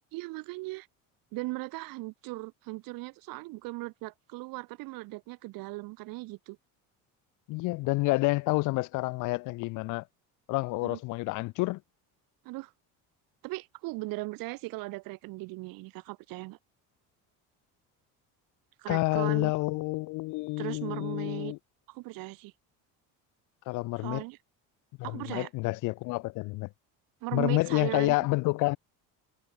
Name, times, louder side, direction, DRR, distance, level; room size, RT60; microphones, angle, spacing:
voice 1, 0.1-0.9 1.3-6.6 10.8-11.0 12.5-12.7 13.4-16.6 18.8-19.5 20.6-21.5 21.9-22.5 24.0-24.4 25.0-25.5 27.2-28.2, right 22 dB, 75° right, 1.9 m, -38 dB
voice 2, 7.5-10.0 10.5-11.8 18.9-21.6 23.7-24.2 25.0-26.7 27.3-28.8, left 22 dB, 60° left, 0.5 m, -29 dB
cardioid pair, 145°, 35 cm